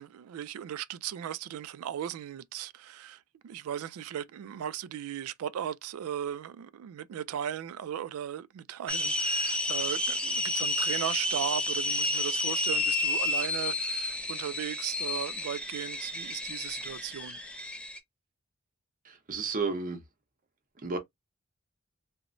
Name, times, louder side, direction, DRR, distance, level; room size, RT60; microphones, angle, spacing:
voice 1, 0.0-17.4, right 10 dB, 80° right, 0.3 m, -37 dB
sound 1, 8.9-18.0, left 2 dB, 5° left, 0.3 m, -31 dB
voice 2, 19.0-20.0 20.8-21.0, right 4 dB, 40° right, 0.7 m, -32 dB
2.9 x 2.0 x 2.5 m
head